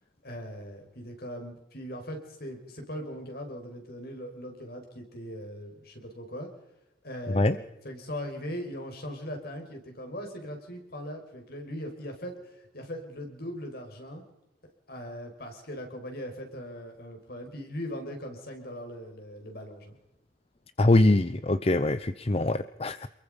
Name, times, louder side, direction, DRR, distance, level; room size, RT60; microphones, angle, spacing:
voice 1, 0.2-6.5 7.0-14.2 14.9-19.9, equal, 60° left, 4 dB, 5.6 m, -40 dB
voice 2, 20.8-23.1, left 2 dB, 35° left, 13 dB, 0.7 m, -23 dB
28.0 x 22.0 x 5.3 m, 0.92 s
head